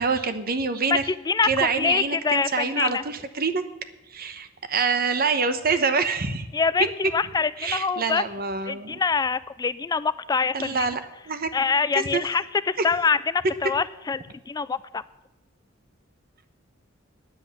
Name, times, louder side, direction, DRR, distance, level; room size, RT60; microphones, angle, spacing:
voice 1, 0.0-1.0 1.4-3.6 4.1-6.5 7.6-9.0 10.5-11.5 11.9-12.2 12.8-12.9, right 4 dB, 50° right, 10 dB, 1.0 m, -26 dB
voice 2, 0.9-3.0 6.5-8.2 8.7-10.9 11.5-15.0, left 5 dB, 20° left, 16 dB, 0.3 m, -25 dB
9.8 x 7.7 x 9.1 m, 0.98 s
head